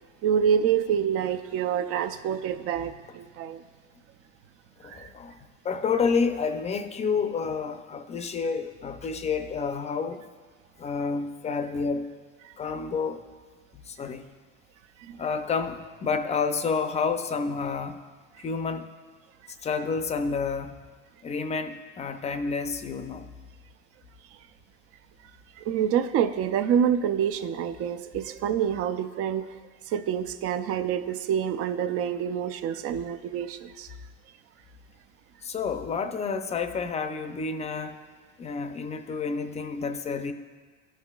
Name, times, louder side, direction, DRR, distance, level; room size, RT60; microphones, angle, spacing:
voice 1, 0.2-3.6 4.8-5.1 12.4-12.5 15.0-15.2 25.6-29.5 29.9-33.9, right 8 dB, 50° right, 9 dB, 0.5 m, -27 dB
voice 2, 4.8-10.3 10.8-12.1 12.6-13.3 13.7-14.3 15.2-18.0 18.4-18.9 19.6-20.7 21.2-23.3 35.4-38.0 38.4-40.3, left 5 dB, 20° left, 8 dB, 0.5 m, -29 dB
14.5 x 5.6 x 2.4 m, 1.5 s
supercardioid pair, 115°, 30 cm